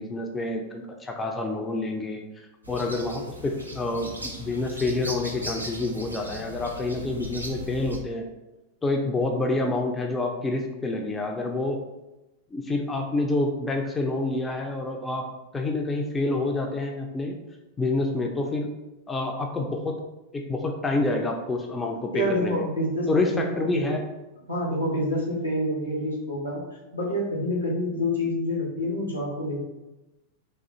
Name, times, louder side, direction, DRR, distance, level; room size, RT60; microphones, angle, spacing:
voice 1, 0.0-8.3 8.8-11.8 12.5-15.3 15.5-17.4 17.8-18.7 19.1-20.0 20.3-22.6 23.1-24.1, left 2 dB, 15° left, 2 dB, 0.3 m, -28 dB
sound 1, 2.6-8.0, equal, 85° right, 0.4 m, -38 dB
voice 2, 22.1-23.9 24.5-26.6 26.9-29.5, left 1 dB, 85° left, -4 dB, 0.9 m, -27 dB
3.2 x 2.3 x 2.8 m, 1.0 s
figure-of-eight pair, 90°, 0 cm